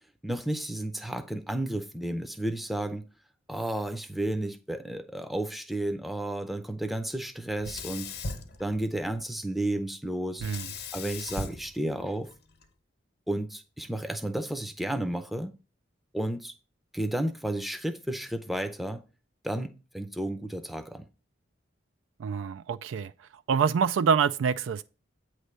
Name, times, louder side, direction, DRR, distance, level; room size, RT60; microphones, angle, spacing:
voice 1, 0.2-3.0 3.5-8.1 8.6-10.4 10.9-12.3 13.3-15.5 16.1-16.5 16.9-19.1 19.4-21.1, right 1 dB, ahead, 0.5 m, -32 dB
Sink (filling or washing), 7.6-9.2 10.4-12.6, left 3 dB, 55° left, 1.0 m, -38 dB
voice 2, 22.2-23.1 23.5-24.8, right 6 dB, 85° right, 0.3 m, -26 dB
8.9 x 3.2 x 6.6 m
head